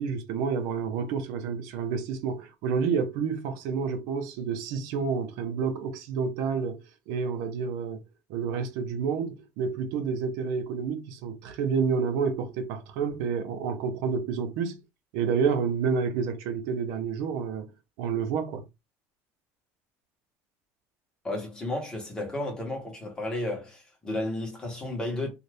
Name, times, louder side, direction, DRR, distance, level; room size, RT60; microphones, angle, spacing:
voice 1, 0.0-8.0 8.3-14.8 15.1-17.7 18.0-18.6, right 6 dB, 75° right, 0.7 m, -29 dB
voice 2, 21.2-25.3, left 1 dB, 15° left, 1.2 m, -33 dB
2.6 x 2.4 x 3.3 m
cardioid pair, 150°, 6 cm